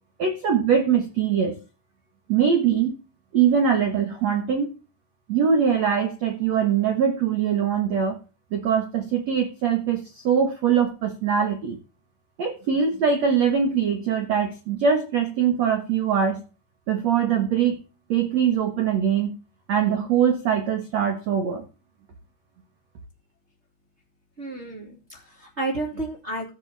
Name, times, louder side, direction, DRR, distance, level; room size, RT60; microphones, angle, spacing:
voice 1, 0.2-1.5 2.3-3.0 3.3-4.7 5.3-8.2 8.5-11.8 12.4-16.4 16.9-17.8 18.1-19.3 19.7-21.6, right 7 dB, 85° right, 5 dB, 1.5 m, -22 dB
voice 2, 24.4-26.5, right 2 dB, 30° right, 0 dB, 1.3 m, -31 dB
15.5 x 6.2 x 3.4 m, 0.31 s
omnidirectional pair, 5.5 m